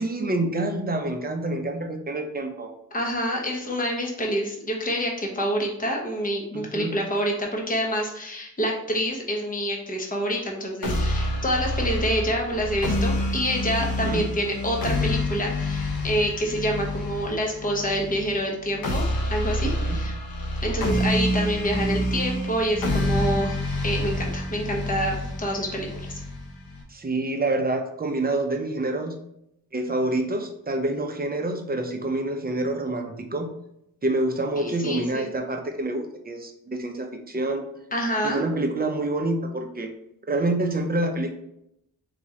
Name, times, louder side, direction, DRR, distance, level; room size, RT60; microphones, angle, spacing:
voice 1, 0.0-2.7 6.5-6.9 13.8-14.2 19.6-20.0 26.9-29.1 29.7-33.5 34.0-37.6 38.2-39.9 40.3-41.3, right 2 dB, 25° right, 4 dB, 0.7 m, -27 dB
voice 2, 2.9-19.0 19.3-20.1 20.6-26.2 34.6-35.3 37.9-38.4, equal, 25° left, 0 dB, 1.0 m, -27 dB
sound 1, 10.8-26.8, left 1 dB, 70° left, 1.2 m, -27 dB
4.2 x 3.0 x 3.7 m, 0.77 s
cardioid pair, 90°, 36 cm